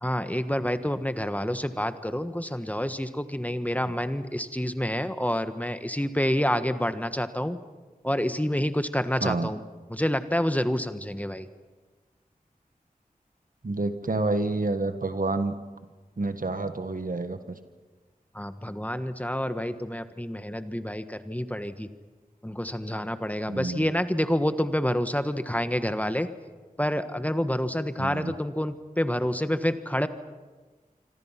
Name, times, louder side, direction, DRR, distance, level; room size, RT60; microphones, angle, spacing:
voice 1, 0.0-7.6 8.0-9.6 9.9-11.5 18.3-21.9 22.4-26.3 26.8-30.1, equal, 10° left, 10 dB, 1.4 m, -28 dB
voice 2, 13.6-15.5 16.2-17.6 23.5-23.9 28.0-28.3, right 2 dB, 65° right, 9 dB, 1.6 m, -29 dB
26.5 x 25.5 x 5.9 m, 1.3 s
wide cardioid pair, 45°, 15 cm